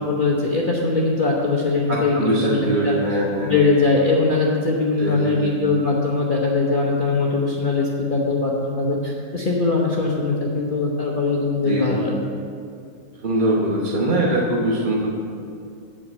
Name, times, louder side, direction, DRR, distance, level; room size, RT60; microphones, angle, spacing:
voice 1, 0.0-12.1, left 3 dB, 40° left, -3 dB, 0.9 m, -21 dB
voice 2, 1.9-3.5 5.0-5.4 11.6-12.0 13.2-15.1, right 1 dB, 35° right, -4 dB, 1.0 m, -22 dB
8.5 x 5.8 x 7.3 m, 2.4 s
omnidirectional pair, 1.7 m